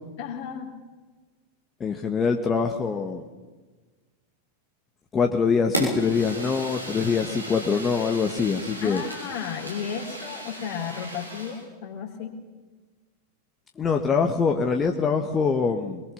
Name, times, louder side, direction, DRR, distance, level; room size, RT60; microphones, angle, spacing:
voice 1, 0.2-0.7 8.8-12.3, left 7 dB, 50° left, -2 dB, 3.6 m, -33 dB
voice 2, 1.8-3.3 5.1-9.0 13.8-16.0, left 5 dB, 20° left, 3 dB, 1.6 m, -24 dB
Fire, 5.7-11.6, right 1 dB, 90° right, 6.8 m, -35 dB
22.5 x 22.5 x 7.2 m, 1.3 s
figure-of-eight pair, 90°, 0 cm